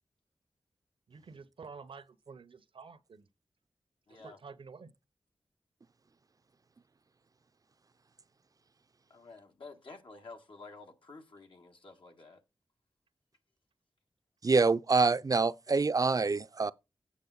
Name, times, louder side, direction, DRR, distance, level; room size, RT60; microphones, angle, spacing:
voice 1, 1.1-3.3 4.1-4.9, right 5 dB, 80° right, 0.9 m, -50 dB
voice 2, 4.1-4.4 9.1-12.4, left 3 dB, 75° left, 1.7 m, -51 dB
voice 3, 14.4-16.7, right 4 dB, 40° right, 0.5 m, -26 dB
8.5 x 6.3 x 4.0 m
cardioid pair, 45°, 9 cm